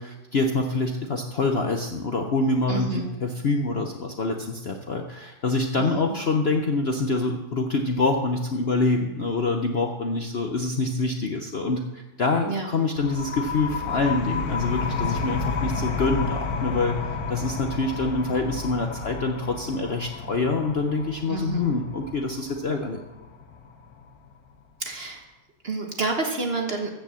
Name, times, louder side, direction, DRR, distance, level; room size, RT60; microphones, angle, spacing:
voice 1, 0.0-23.0, left 3 dB, 50° left, 3 dB, 0.8 m, -26 dB
voice 2, 2.7-3.1 5.8-6.1 12.5-12.7 21.3-21.8 24.8-25.2 25.6-26.9, right 3 dB, 40° right, 2 dB, 1.4 m, -29 dB
sound 1, 13.0-24.3, left 5 dB, 65° left, 1.4 m, -31 dB
13.5 x 5.6 x 7.5 m, 1.1 s
omnidirectional pair, 1.8 m